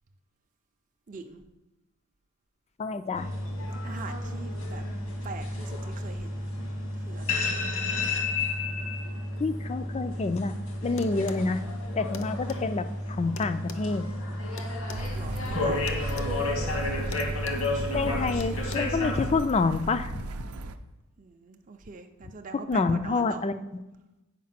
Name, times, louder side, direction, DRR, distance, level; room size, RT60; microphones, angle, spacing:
voice 1, 1.1-1.4 3.8-4.8 5.2-6.4 6.9-7.4 11.0-11.3 15.1-16.0 21.2-23.4, right 4 dB, 35° right, 5 dB, 0.5 m, -42 dB
voice 2, 2.8-3.3 9.4-10.6 10.8-11.6 12.0-14.1 17.9-20.3 22.7-23.6, left 3 dB, 30° left, 12 dB, 0.4 m, -27 dB
sound 1, 3.1-19.3, left 2 dB, 85° left, 1.7 m, -31 dB
sound 2, 11.0-11.5 12.1-12.6 13.4-15.1 15.9-16.3 16.6-16.8 17.1-17.7 18.4-18.8, left 5 dB, 60° left, 0.7 m, -43 dB
sound 3, 14.9-20.8, right 2 dB, 90° right, 0.5 m, -36 dB
8.5 x 5.0 x 5.8 m, 1.0 s
head